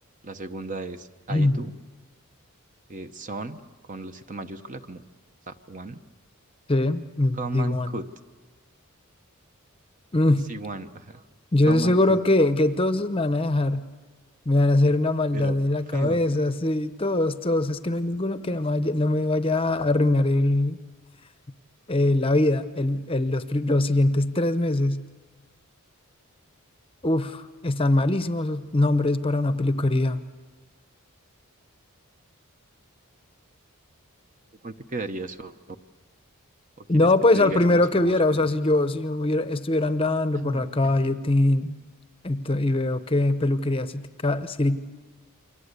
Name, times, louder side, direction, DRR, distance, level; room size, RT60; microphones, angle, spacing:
voice 1, 0.2-1.7 2.9-3.6 3.9-5.0 5.5-6.0 7.3-8.0 10.5-11.2 11.7-12.2 15.3-15.6 15.9-16.2 34.6-35.5 36.8-37.1 37.3-38.5 40.3-40.9, right 2 dB, 35° right, 8 dB, 0.9 m, -35 dB
voice 2, 1.3-1.6 6.7-8.0 10.1-10.5 11.5-13.9 14.5-20.8 21.9-25.0 27.0-30.2 36.9-41.8 42.2-44.8, left 2 dB, 25° left, 11 dB, 0.8 m, -22 dB
29.5 x 24.0 x 8.2 m, 1.3 s
head